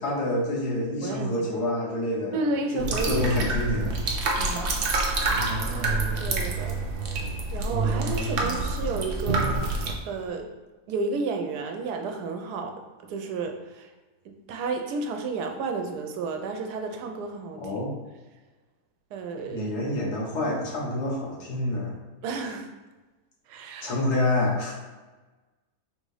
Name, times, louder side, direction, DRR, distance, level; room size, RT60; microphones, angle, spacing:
voice 1, 0.0-2.4 2.7-4.0 17.6-17.9 19.4-21.9 23.8-24.7, left 1 dB, 80° left, -4 dB, 1.7 m, -27 dB
voice 2, 1.0-1.3 2.3-3.1 3.6-3.7 4.4-4.7 6.2-6.7 7.5-10.5 10.9-12.7 13.1-13.9 14.5-17.6 19.1-19.6 22.2-22.7 23.5-23.9, right 4 dB, 90° right, 4 dB, 1.2 m, -31 dB
sound 1, 2.8-9.9, right 3 dB, 60° right, 0.5 m, -27 dB
4.0 x 2.7 x 4.8 m, 1.2 s
omnidirectional pair, 1.7 m